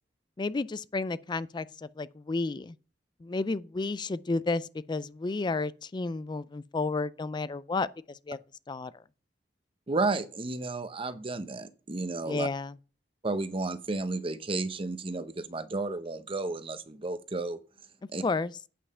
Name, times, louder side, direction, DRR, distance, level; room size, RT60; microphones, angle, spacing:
voice 1, 0.4-2.8 3.2-8.4 8.7-9.0 12.3-12.8 18.2-18.5, left 3 dB, 25° left, 0.4 m, -32 dB
voice 2, 9.9-12.5 13.2-17.6 18.1-18.2, right 3 dB, 30° right, 0.7 m, -32 dB
8.6 x 5.5 x 5.6 m
head